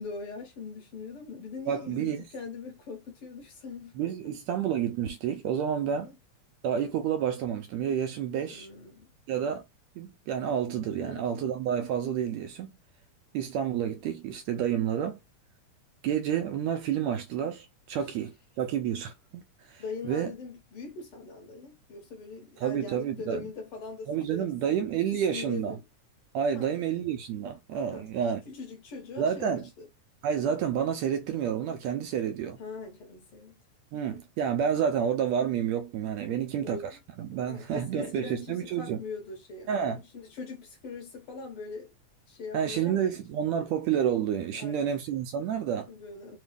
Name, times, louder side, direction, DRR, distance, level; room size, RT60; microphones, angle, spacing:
voice 1, 0.0-4.1 5.8-6.1 8.5-9.1 11.0-11.5 18.0-18.1 19.8-24.5 25.1-25.8 26.5-26.8 27.9-28.1 28.4-29.9 32.6-33.5 34.1-34.2 36.3-37.0 37.3-41.9 42.3-43.2 44.5-45.0 45.9-46.4, left 4 dB, 60° left, 1.7 m, -42 dB
voice 2, 1.7-2.3 4.0-6.1 6.6-8.7 9.3-9.6 10.0-12.7 13.3-15.2 16.0-20.3 22.6-23.4 24.1-25.7 26.3-28.4 29.2-29.7 30.2-32.6 33.9-36.8 37.2-39.0 39.7-40.0 42.5-45.9, right 8 dB, 80° right, 1.6 m, -29 dB
4.8 x 2.2 x 3.3 m
omnidirectional pair, 3.5 m